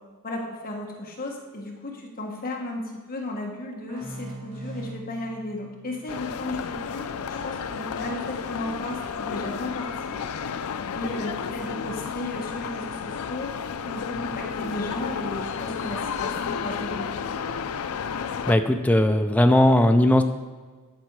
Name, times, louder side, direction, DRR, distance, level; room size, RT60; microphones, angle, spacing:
voice 1, 0.2-10.2 10.9-13.5 13.8-17.6, left 1 dB, 40° left, 0 dB, 1.4 m, -34 dB
sound 1, 3.9-7.3, right 2 dB, 80° right, 3.2 m, -42 dB
sound 2, 6.1-18.6, left 6 dB, 75° left, 0.4 m, -32 dB
voice 2, 18.5-20.2, left 1 dB, 5° left, 6 dB, 0.4 m, -18 dB
11.5 x 6.1 x 4.8 m, 1.4 s
head